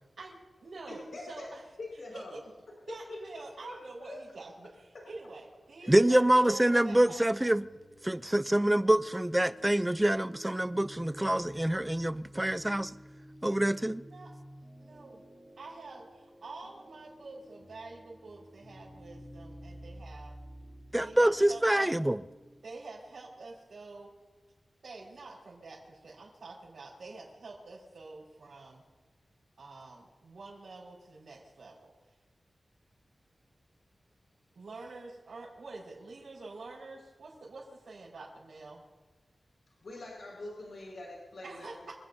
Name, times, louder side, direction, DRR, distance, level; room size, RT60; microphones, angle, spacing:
voice 1, 0.2-1.6 2.1-2.4 2.9-7.3 14.0-14.4 14.8-15.2 15.6-20.4 21.0-22.0 22.6-24.1 24.8-28.8 29.6-31.9 34.5-38.8 41.4-41.9, right 3 dB, 80° right, 4.9 m, -47 dB
voice 2, 0.9-1.5 1.8-2.4 2.9-4.2 5.8-6.0 39.8-41.7, left 2 dB, 70° left, 5.4 m, -44 dB
voice 3, 5.9-7.6 8.0-12.9 13.4-14.0 20.9-22.2, right 1 dB, 10° right, 0.4 m, -26 dB
sound 1, 6.6-22.6, equal, 10° left, 2.9 m, -52 dB
27.5 x 17.5 x 2.7 m
wide cardioid pair, 120°, 0 cm